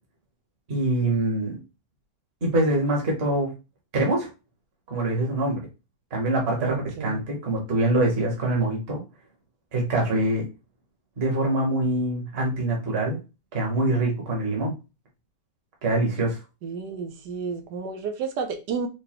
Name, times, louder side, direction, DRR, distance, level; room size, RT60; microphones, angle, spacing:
voice 1, 0.7-1.6 2.4-3.5 3.9-4.3 4.9-5.6 6.1-9.0 9.7-10.5 11.2-13.2 13.5-14.7 15.8-16.4, right 2 dB, 40° right, 1.3 m, -24 dB
voice 2, 6.6-7.2 16.6-18.9, right 5 dB, 85° right, 1.3 m, -31 dB
4.9 x 2.2 x 2.9 m
omnidirectional pair, 1.8 m